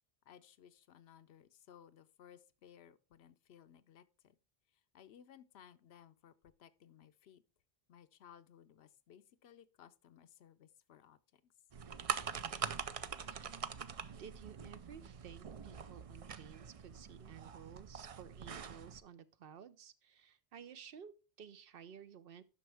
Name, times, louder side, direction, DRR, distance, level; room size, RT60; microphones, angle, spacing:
voice 1, 0.3-4.4 4.7-7.4 7.9-11.5, left 9 dB, 85° left, 0.9 m, -60 dB
sound 1, 11.7-19.0, right 6 dB, 45° right, 0.5 m, -44 dB
voice 2, 13.3-13.8 14.2-22.4, right 8 dB, 65° right, 0.9 m, -54 dB
11.0 x 6.1 x 3.4 m
omnidirectional pair, 1.1 m